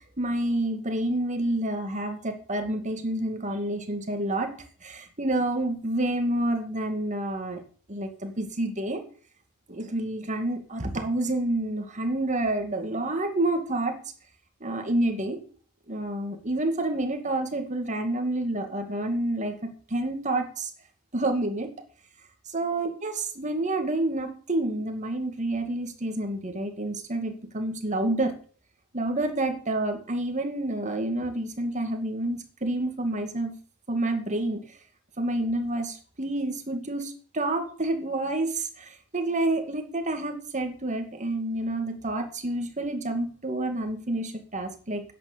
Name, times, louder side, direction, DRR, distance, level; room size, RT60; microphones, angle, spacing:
voice 1, 0.2-4.5 4.8-7.6 7.9-9.0 9.7-14.0 14.6-15.4 15.9-20.7 21.1-21.7 22.5-28.3 28.9-33.5 33.9-34.6 35.2-45.0, right 1 dB, 35° right, 5 dB, 2.2 m, -28 dB
10.5 x 8.7 x 6.8 m, 0.43 s
head